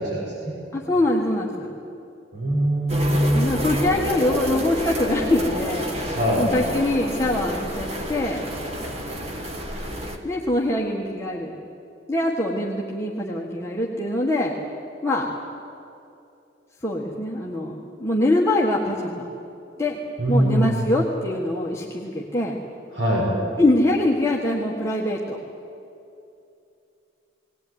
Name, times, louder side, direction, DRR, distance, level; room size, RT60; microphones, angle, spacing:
voice 1, 0.0-0.6 2.3-3.7 6.1-6.4 20.2-20.8 22.9-23.3, equal, 65° right, -3 dB, 5.9 m, -22 dB
voice 2, 0.7-1.7 3.3-8.4 10.2-11.5 12.1-14.5 15.0-15.3 16.8-19.3 19.8-20.0 20.3-22.6 23.6-25.4, left 1 dB, 15° left, -4 dB, 1.6 m, -23 dB
sound 1, 2.9-10.2, equal, 30° right, 1.6 m, -29 dB
19.5 x 18.5 x 9.6 m, 2.7 s
head